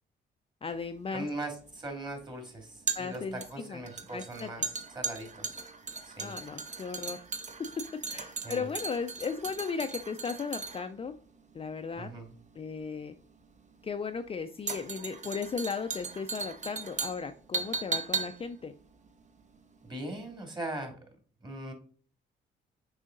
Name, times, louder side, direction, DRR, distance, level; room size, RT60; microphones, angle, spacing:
voice 1, 0.6-1.3 2.9-3.8 4.1-4.5 6.2-7.2 8.1-11.1 11.5-12.1 12.6-13.1 13.8-18.7, left 5 dB, 30° left, 7 dB, 0.4 m, -36 dB
sound 1, 0.7-20.0 20.3-20.4, right 5 dB, 35° right, 0.8 m, -38 dB
voice 2, 1.1-4.6 4.9-5.4 6.1-6.3 8.4-8.7 12.0-12.3 19.8-21.0 21.4-21.7, right 1 dB, 20° right, 3 dB, 2.4 m, -39 dB
6.4 x 4.9 x 3.8 m, 0.43 s
cardioid pair, 90°, 20 cm